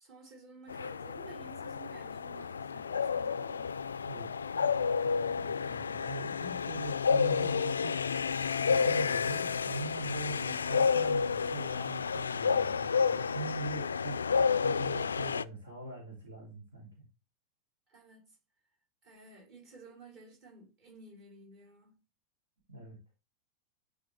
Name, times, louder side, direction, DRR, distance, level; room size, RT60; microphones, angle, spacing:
voice 1, 0.0-3.8 10.3-10.7 17.9-18.4 19.0-22.0, right 3 dB, 40° right, 4.1 m, -53 dB
sound 1, 0.7-15.4, left 6 dB, 70° left, 0.3 m, -31 dB
voice 2, 4.1-8.3 8.6-17.0 22.7-23.0, right 2 dB, 70° right, 2.4 m, -42 dB
10.5 x 5.0 x 3.2 m
figure-of-eight pair, 90°, 0 cm